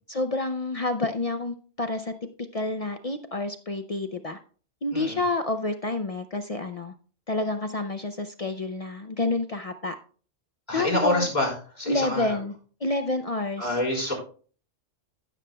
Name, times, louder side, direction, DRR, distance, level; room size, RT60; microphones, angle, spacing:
voice 1, 0.1-2.1 2.5-4.4 4.8-6.9 7.3-9.9 10.7-11.3 11.9-12.5 12.8-13.8, left 2 dB, 50° left, 7 dB, 0.4 m, -29 dB
voice 2, 10.7-11.5 11.8-12.3 13.6-14.1, left 1 dB, 35° left, -3 dB, 4.3 m, -26 dB
16.0 x 7.3 x 2.2 m, 0.41 s
omnidirectional pair, 1.3 m